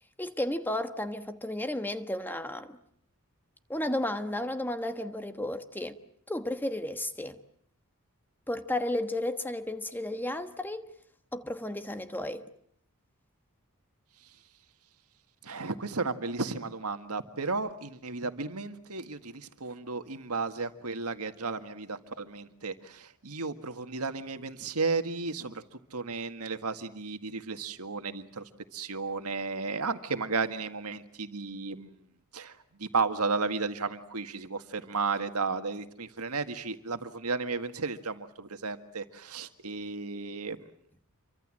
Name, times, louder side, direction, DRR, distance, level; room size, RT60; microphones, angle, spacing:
voice 1, 0.2-2.8 3.7-6.0 6.3-7.4 8.5-10.9 11.3-12.5, left 1 dB, 10° left, 1.2 m, -33 dB
voice 2, 15.4-25.6 25.9-32.0 32.3-40.6, right 4 dB, 80° right, 1.9 m, -34 dB
27.5 x 24.0 x 7.7 m
head